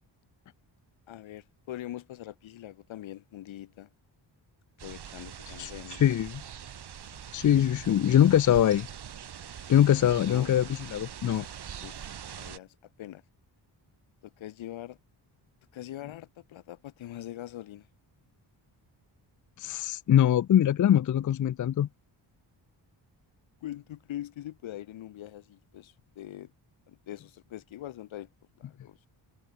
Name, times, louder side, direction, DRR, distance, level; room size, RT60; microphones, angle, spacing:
voice 1, 1.1-3.9 4.8-6.2 7.1-7.2 7.9-8.3 10.2-10.5 11.8-12.0 12.4-13.2 14.2-15.0 15.7-17.9 23.6-26.5 26.9-28.3 28.6-29.0, left 13 dB, 85° left, 1.2 m, -42 dB
sound 1, 4.8-12.6, right 8 dB, 60° right, 2.1 m, -43 dB
voice 2, 6.0-6.4 7.3-8.9 9.7-11.5 19.6-21.9, left 10 dB, 40° left, 0.5 m, -23 dB
cardioid pair, 105°, 46 cm